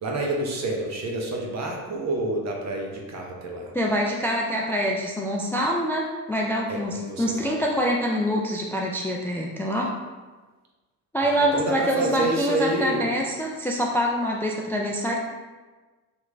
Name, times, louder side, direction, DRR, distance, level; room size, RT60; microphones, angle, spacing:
voice 1, 0.0-3.7 6.7-7.5 11.2-13.1, right 2 dB, 45° right, 0 dB, 0.8 m, -28 dB
voice 2, 3.7-9.9 11.1-15.1, equal, 5° left, -1 dB, 0.3 m, -25 dB
3.0 x 2.5 x 3.2 m, 1.3 s
supercardioid pair, 60°, 38 cm